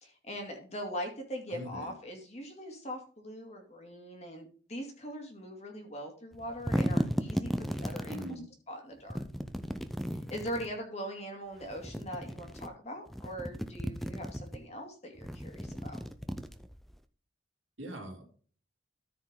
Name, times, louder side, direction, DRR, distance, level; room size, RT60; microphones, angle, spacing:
voice 1, 0.0-8.3 8.7-9.2 10.3-16.0, equal, 35° left, 3 dB, 2.4 m, -41 dB
voice 2, 1.5-1.9 8.1-8.5 17.8-18.3, right 1 dB, 80° right, 0 dB, 3.5 m, -41 dB
sound 1, 6.3-8.3 9.1-10.7 11.6-12.7 13.1-14.6 15.2-17.0, equal, ahead, 0.5 m, -35 dB
13.5 x 5.1 x 3.8 m, 0.43 s
head